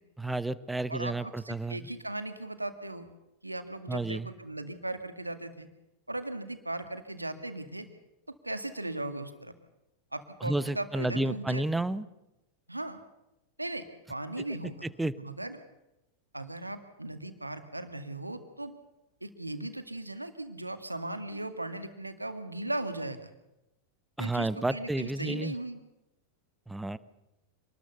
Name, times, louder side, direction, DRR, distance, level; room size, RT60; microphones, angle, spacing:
voice 1, 0.2-1.9 3.9-4.3 10.4-12.0 14.8-15.1 24.2-25.5 26.7-27.0, right 2 dB, 5° right, 16 dB, 1.0 m, -31 dB
voice 2, 0.9-3.1 3.4-5.7 6.1-7.9 8.3-9.5 10.1-11.6 12.7-13.0 13.6-14.8 15.2-15.6 16.3-18.8 19.2-23.3 24.2-25.8, right 2 dB, 85° right, 8 dB, 2.1 m, -37 dB
26.5 x 20.0 x 6.9 m, 0.94 s
figure-of-eight pair, 90°, 0 cm